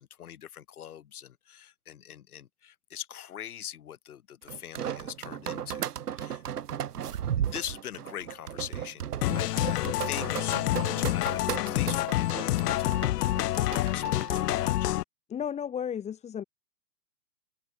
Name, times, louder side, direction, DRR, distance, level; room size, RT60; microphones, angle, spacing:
voice 1, 0.0-6.4 7.4-14.9, left 10 dB, 65° left, 7.0 m, -42 dB
sound 1, 4.5-14.5, right 9 dB, 75° right, 2.7 m, -35 dB
sound 2, 9.2-15.0, left 15 dB, 80° left, 0.5 m, -28 dB
voice 2, 15.3-16.4, left 8 dB, 15° left, 2.4 m, -33 dB
open air
hypercardioid pair, 145°, 47 cm